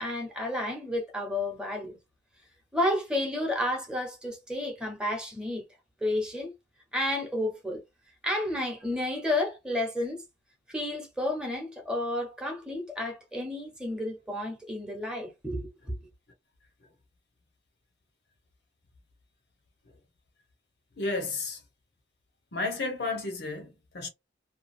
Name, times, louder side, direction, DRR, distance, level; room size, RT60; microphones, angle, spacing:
voice 1, 0.0-2.0 2.7-5.6 6.0-6.5 6.9-7.8 8.2-10.2 10.7-16.0, left 1 dB, 5° right, 1.0 m, -31 dB
voice 2, 21.0-21.6 22.5-24.1, left 3 dB, 65° left, 0.9 m, -32 dB
2.8 x 2.4 x 2.5 m
head